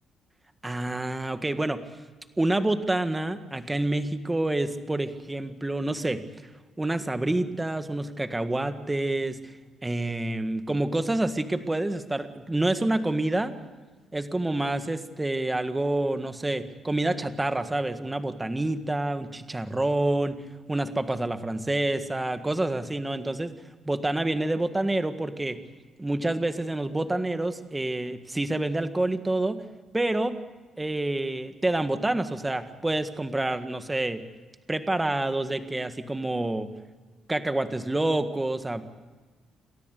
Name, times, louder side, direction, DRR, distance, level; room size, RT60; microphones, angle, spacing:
voice 1, 0.6-1.8 2.4-6.2 6.8-9.4 9.8-13.5 14.1-20.4 20.7-23.5 23.8-25.6 26.0-29.6 29.9-30.3 30.8-34.2 34.7-36.7 37.3-38.8, right 2 dB, 15° right, 9 dB, 1.6 m, -27 dB
29.5 x 13.0 x 8.3 m, 1.3 s
cardioid pair, 90°, 0 cm